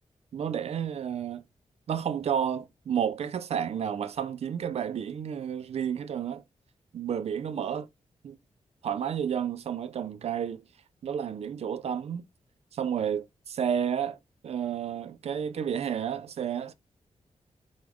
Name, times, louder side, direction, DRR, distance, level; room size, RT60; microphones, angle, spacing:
voice 1, 0.3-1.4 1.9-6.4 6.9-7.9 8.2-8.4 8.8-10.6 11.0-12.2 12.7-14.2 14.4-16.7, right 8 dB, 60° right, 0.4 m, -31 dB
3.0 x 2.3 x 3.5 m
wide cardioid pair, 125°, 12 cm